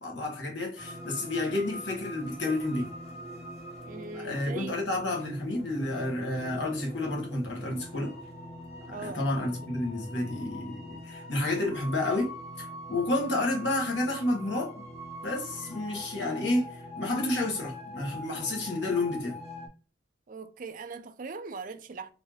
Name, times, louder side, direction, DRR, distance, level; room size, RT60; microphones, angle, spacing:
voice 1, 0.0-2.9 4.1-8.1 8.9-12.3 12.6-14.8 15.2-19.4, left 2 dB, 65° left, 1.3 m, -30 dB
sound 1, 0.8-19.7, equal, 35° left, 1.1 m, -43 dB
voice 2, 3.8-4.8 8.9-9.5 20.3-22.1, right 4 dB, 45° right, 0.4 m, -40 dB
4.2 x 2.7 x 3.0 m
head